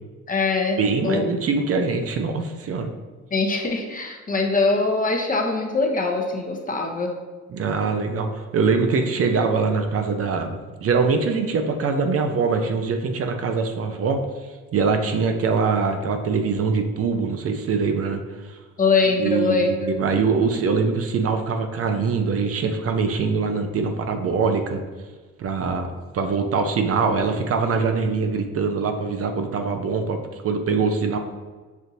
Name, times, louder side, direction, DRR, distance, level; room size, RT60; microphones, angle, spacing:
voice 1, 0.3-1.2 3.3-7.1 18.8-19.9, left 3 dB, 30° left, 2 dB, 0.7 m, -22 dB
voice 2, 0.8-2.9 7.5-18.6 19.2-24.8 25.4-25.9 26.1-31.2, right 4 dB, 50° right, 5 dB, 0.5 m, -23 dB
6.2 x 2.6 x 2.6 m, 1.3 s
cardioid pair, 90°, 30 cm